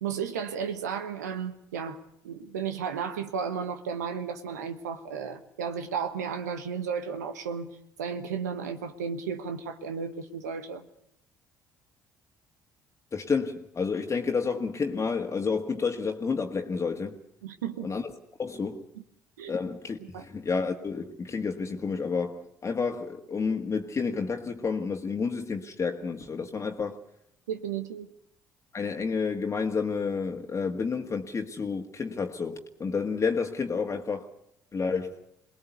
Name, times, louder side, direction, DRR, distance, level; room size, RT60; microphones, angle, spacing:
voice 1, 0.0-2.0 2.2-10.9 17.4-17.9 19.0-19.1 19.4-19.5 20.1-20.2 27.5-28.1, right 6 dB, 85° right, 1.2 m, -34 dB
voice 2, 13.1-17.2 17.8-18.1 18.4-18.8 19.5-27.0 28.7-34.3 34.7-35.2, left 5 dB, 35° left, 1.8 m, -30 dB
23.0 x 19.0 x 8.2 m
hypercardioid pair, 55°, 9 cm